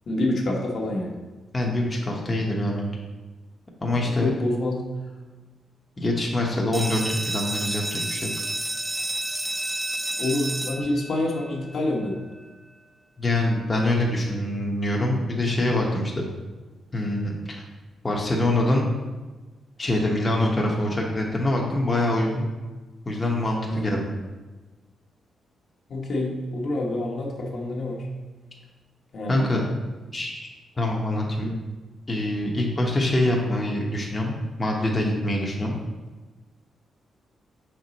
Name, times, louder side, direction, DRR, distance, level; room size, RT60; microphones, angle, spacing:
voice 1, 0.1-1.2 4.0-4.9 10.2-12.2 23.7-24.0 25.9-28.1 29.1-29.5 31.4-31.5, left 1 dB, 55° left, -1 dB, 1.1 m, -27 dB
voice 2, 1.5-3.0 3.8-4.3 6.0-8.3 13.2-16.2 16.9-17.3 18.0-18.9 19.8-22.5 23.0-24.1 29.3-29.6 30.1-30.5 30.8-31.5 32.1-35.7, left 1 dB, 20° left, -2 dB, 0.9 m, -24 dB
sound 1, 6.7-12.2, right 1 dB, 10° right, 0.4 m, -31 dB
5.9 x 4.5 x 4.0 m, 1.2 s
cardioid pair, 120°, 0 cm